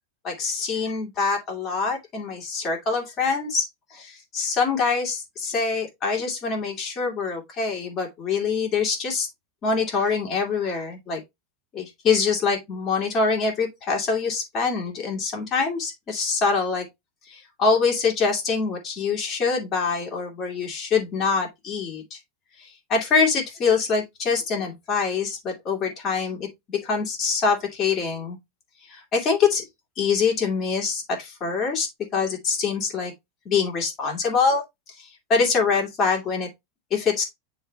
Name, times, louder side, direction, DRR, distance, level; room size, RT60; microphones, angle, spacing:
voice 1, 0.2-3.7 3.9-9.3 9.6-11.2 11.7-16.9 17.2-22.2 22.6-28.4 28.9-29.6 30.0-33.1 33.5-34.6 35.0-36.5 36.9-37.2, left 5 dB, 20° left, 2.2 m, -24 dB
9.5 x 3.4 x 3.3 m
supercardioid pair, 175°, 0 cm